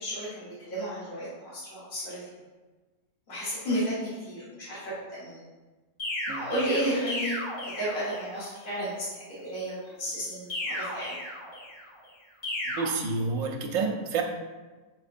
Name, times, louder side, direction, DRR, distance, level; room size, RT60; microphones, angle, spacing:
voice 1, 0.0-2.2 3.3-4.9 5.2-5.4 6.3-7.4 7.6-11.1, equal, 40° left, -10 dB, 1.5 m, -32 dB
sound 1, 6.0-8.4 10.5-11.9 12.4-12.9, left 1 dB, 80° left, 1.9 m, -34 dB
voice 2, 12.7-14.2, right 4 dB, 85° right, 3 dB, 1.0 m, -29 dB
6.1 x 3.0 x 2.5 m, 1.3 s
omnidirectional pair, 1.4 m